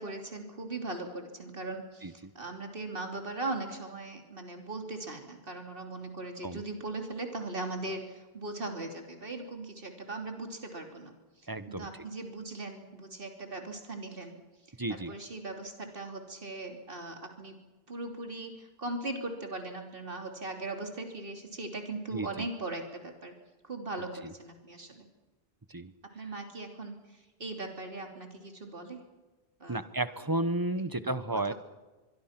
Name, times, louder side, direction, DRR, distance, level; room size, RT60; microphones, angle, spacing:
voice 1, 0.0-11.1 11.7-14.4 14.9-17.6 17.9-23.3 23.6-25.1 26.0-29.0 29.6-29.9 31.0-31.5, right 2 dB, 60° right, 4 dB, 3.3 m, -39 dB
voice 2, 11.5-11.9 14.8-15.1 22.1-22.3 25.7-25.9 29.7-31.5, right 2 dB, 20° right, 13 dB, 1.0 m, -32 dB
24.5 x 23.0 x 5.9 m, 1.2 s
omnidirectional pair, 1.1 m